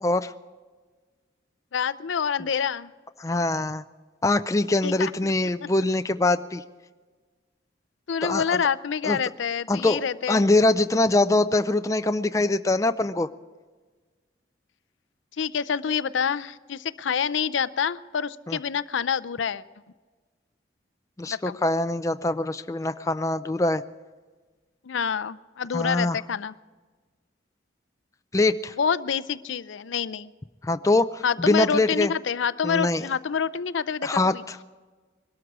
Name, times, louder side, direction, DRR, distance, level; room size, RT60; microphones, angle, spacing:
voice 1, 0.0-0.3 3.2-3.8 4.2-6.6 8.2-8.6 9.0-9.2 9.7-10.0 10.3-13.3 18.5-18.6 21.2-23.8 25.7-26.2 28.3-28.7 30.6-32.1 32.6-33.1 34.0-34.6, left 2 dB, 15° left, 10 dB, 0.4 m, -23 dB
voice 2, 1.7-2.9 4.8-5.3 8.1-10.5 15.4-19.6 21.3-21.6 24.8-26.5 28.8-30.3 31.2-34.4, left 7 dB, 85° left, 16 dB, 0.5 m, -27 dB
22.0 x 12.5 x 4.8 m, 1.4 s
head